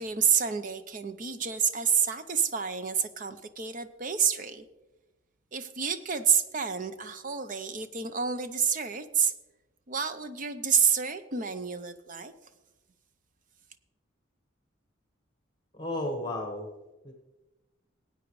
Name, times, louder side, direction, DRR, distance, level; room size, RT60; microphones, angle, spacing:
voice 1, 0.0-4.6 5.5-9.3 9.9-12.3, right 7 dB, 40° right, 10 dB, 0.7 m, -28 dB
voice 2, 15.7-16.7 17.0-17.1, left 1 dB, 20° left, 3 dB, 1.2 m, -33 dB
18.5 x 9.0 x 3.2 m, 1.1 s
head